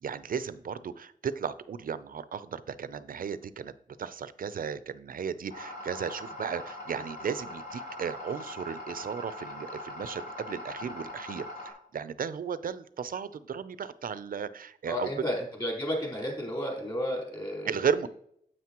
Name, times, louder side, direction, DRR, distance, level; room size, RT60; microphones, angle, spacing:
voice 1, 0.0-3.7 4.0-15.1 17.6-18.1, right 7 dB, 70° right, 14 dB, 0.5 m, -35 dB
sound 1, 5.5-11.7, left 1 dB, 75° left, 3.2 m, -41 dB
voice 2, 14.9-17.7, equal, 30° left, -1 dB, 4.0 m, -32 dB
9.4 x 7.9 x 3.0 m, 0.69 s
wide cardioid pair, 85°, 15 cm